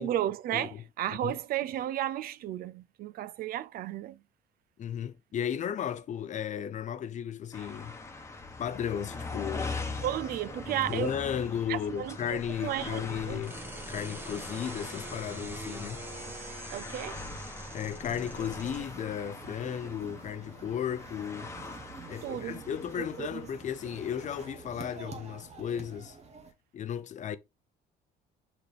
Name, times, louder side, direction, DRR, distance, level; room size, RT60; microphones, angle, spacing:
voice 1, 0.0-4.2 10.0-11.2 11.7-13.4 16.7-17.2 22.2-22.7 23.0-23.4, right 12 dB, 60° right, 0.4 m, -34 dB
voice 2, 0.5-0.8 1.2-1.4 4.8-8.0 8.6-9.8 10.9-13.6 13.9-16.0 17.7-21.5 22.1-26.2 26.7-27.4, left 9 dB, 45° left, 0.6 m, -35 dB
sound 1, 7.5-24.5, left 3 dB, 15° left, 1.1 m, -42 dB
sound 2, 12.3-18.8, right 1 dB, 10° right, 1.5 m, -43 dB
sound 3, 18.0-26.5, right 4 dB, 40° right, 1.3 m, -48 dB
6.7 x 4.1 x 3.4 m
cardioid pair, 110°, 17 cm